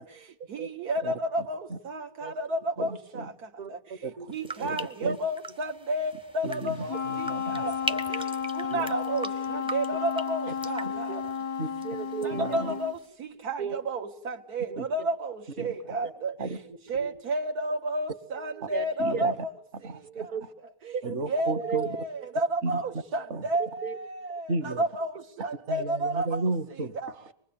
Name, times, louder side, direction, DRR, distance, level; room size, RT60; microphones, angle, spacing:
voice 1, 0.5-1.6 1.9-3.2 4.3-7.0 7.5-8.2 8.6-11.1 12.4-13.0 13.5-16.3 16.9-19.5 21.3-23.2 23.5-25.1 25.4-26.3 27.0-27.1, right 1 dB, 80° right, 1.9 m, -31 dB
voice 2, 1.0-1.8 2.8-3.3 4.0-4.3 4.6-5.2 6.4-7.6 8.7-8.9 10.5-10.6 10.8-10.9 11.6-11.7 12.3-12.7 14.8-14.9 15.6-16.0 16.4-16.6 19.0-19.4 19.8-20.0 21.0-22.0 22.6-22.8 23.3-23.4 24.5-24.8 25.7-27.2, right 3 dB, 50° right, 1.5 m, -34 dB
voice 3, 3.6-4.3 4.6-4.7 5.0-5.1 7.6-8.0 10.9-11.4 11.8-12.8 13.6-13.8 14.7-14.8 16.0-16.1 16.9-17.1 18.5-18.9 19.1-19.2 20.0-20.4 20.9-21.2 21.6-21.9 23.8-24.0, right 7 dB, 65° right, 2.1 m, -36 dB
sound 1, 4.3-12.3 12.5-13.1, equal, 5° right, 0.6 m, -40 dB
Wind instrument woodwind instrument, 6.8-13.0, left 6 dB, 85° left, 1.8 m, -32 dB
25.5 x 21.0 x 8.8 m
omnidirectional pair, 1.6 m